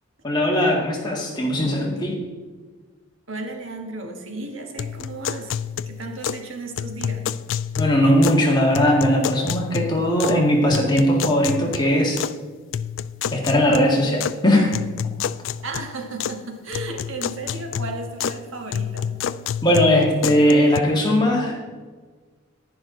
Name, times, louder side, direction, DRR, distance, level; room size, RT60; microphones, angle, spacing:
voice 1, 0.2-2.2 7.8-12.2 13.3-14.8 19.6-21.6, equal, 20° left, -1 dB, 1.9 m, -19 dB
voice 2, 3.3-5.5 5.9-7.3 15.6-19.2, right 2 dB, 70° right, 3 dB, 1.6 m, -34 dB
sound 1, 4.8-6.5 6.8-8.5 8.7-10.4 10.7-12.4 12.7-14.4 14.7-16.4 16.7-18.4 18.7-20.8, left 8 dB, 65° left, 0.3 m, -29 dB
10.5 x 10.5 x 3.9 m, 1.4 s
head